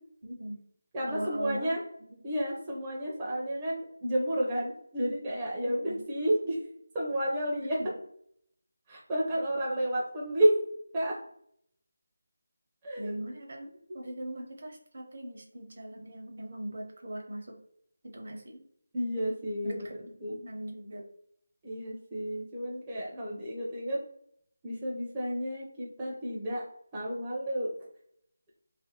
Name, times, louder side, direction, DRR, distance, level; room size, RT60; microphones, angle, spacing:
voice 1, 0.2-0.6 1.1-2.3 5.6-6.0 13.0-13.7 13.9-17.6 18.0-18.6 19.6-19.9 20.3-21.0, right 1 dB, 55° right, 1 dB, 0.8 m, -40 dB
voice 2, 0.9-1.8 2.2-6.6 6.9-7.8 8.9-10.6 10.9-11.2 12.8-13.2 13.9-14.0 18.9-19.9 20.2-20.4 21.6-24.0 24.6-26.6 26.9-27.7, equal, 15° right, -6 dB, 0.5 m, -31 dB
2.7 x 2.5 x 2.7 m, 0.69 s
figure-of-eight pair, 165°, 0 cm